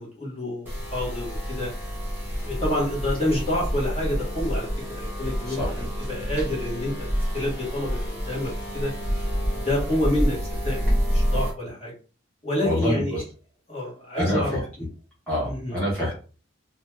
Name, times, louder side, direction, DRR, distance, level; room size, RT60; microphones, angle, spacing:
voice 1, 0.0-1.7 2.4-4.7 4.9-5.6 6.1-6.9 7.3-8.9 9.5-10.4 10.6-11.9 12.4-13.2 13.7-14.6 15.4-15.8, left 1 dB, 30° left, -4 dB, 1.2 m, -28 dB
sound 1, 0.7-11.5, equal, 10° right, 1.0 m, -28 dB
voice 2, 5.5-5.9 12.6-13.2 14.1-14.6 15.3-16.1, equal, 5° left, -8 dB, 0.8 m, -26 dB
2.6 x 2.2 x 3.1 m, 0.37 s
head